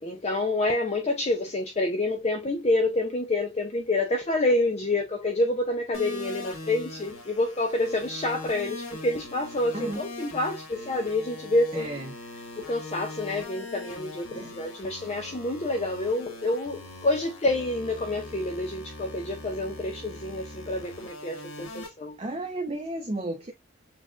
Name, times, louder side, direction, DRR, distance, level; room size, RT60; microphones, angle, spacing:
voice 1, 0.0-11.9 12.6-22.2, left 2 dB, 30° left, 0.5 m, -28 dB
sound 1, 5.9-21.9, left 2 dB, 85° left, 1.6 m, -41 dB
voice 2, 9.7-10.0 11.7-12.1 14.3-14.6 22.2-23.5, right 2 dB, 30° right, 0.6 m, -33 dB
6.2 x 2.5 x 2.4 m
head